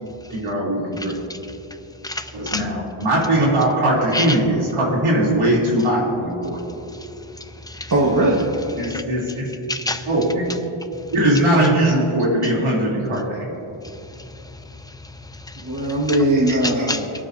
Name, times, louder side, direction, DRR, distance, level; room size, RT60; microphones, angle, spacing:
voice 1, 0.3-1.2 2.3-6.6 8.8-9.5 10.1-10.5 11.1-13.5, right 1 dB, 80° right, -5 dB, 3.3 m, -20 dB
voice 2, 1.0-1.4 2.0-2.7 4.1-4.4 6.9-7.9 8.8-9.0 9.7-10.1 13.8-15.8 16.1-16.2 16.6-17.0, left 2 dB, 10° left, 7 dB, 0.8 m, -30 dB
voice 3, 7.9-8.5 15.6-17.1, right 1 dB, 40° right, -3 dB, 1.6 m, -19 dB
24.5 x 9.9 x 2.7 m, 2.8 s
cardioid pair, 70°, 49 cm